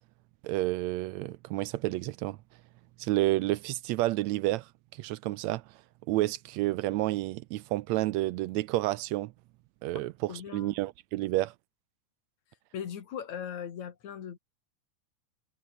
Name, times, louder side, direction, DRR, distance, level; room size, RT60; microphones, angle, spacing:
voice 1, 0.4-2.4 3.0-4.7 5.0-5.6 6.1-9.3 9.8-11.5, right 17 dB, 80° right, 1.8 m, -30 dB
voice 2, 10.3-10.8 12.7-14.4, left 8 dB, 70° left, 3.5 m, -39 dB
omnidirectional pair, 3.4 m